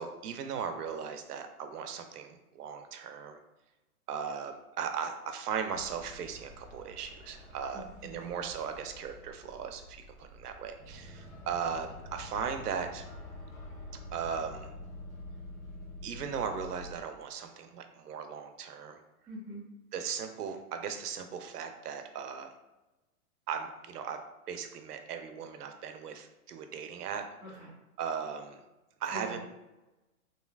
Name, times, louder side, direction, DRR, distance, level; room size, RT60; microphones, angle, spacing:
voice 1, 0.0-3.4 4.1-13.0 14.1-14.7 16.0-19.0 19.9-22.5 23.5-24.2 24.5-27.2 28.0-28.6 29.0-29.4, right 7 dB, 85° right, 6 dB, 0.6 m, -37 dB
sound 1, 5.7-17.0, left 1 dB, 40° left, 1.1 m, -47 dB
voice 2, 7.7-8.2 19.3-19.6 27.4-27.7 29.1-29.4, right 1 dB, 10° right, -7 dB, 0.4 m, -44 dB
3.1 x 2.7 x 2.3 m, 1.0 s
hypercardioid pair, 135°, 45 cm